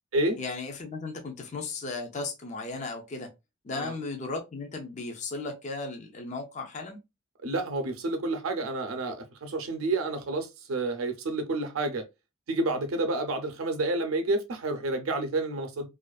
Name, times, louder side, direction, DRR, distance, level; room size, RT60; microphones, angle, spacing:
voice 1, 0.4-3.3 3.6-7.0, left 3 dB, 35° left, 0.4 m, -36 dB
voice 2, 7.4-12.0 12.5-15.9, right 2 dB, 85° right, 0.6 m, -29 dB
2.4 x 2.4 x 2.2 m
head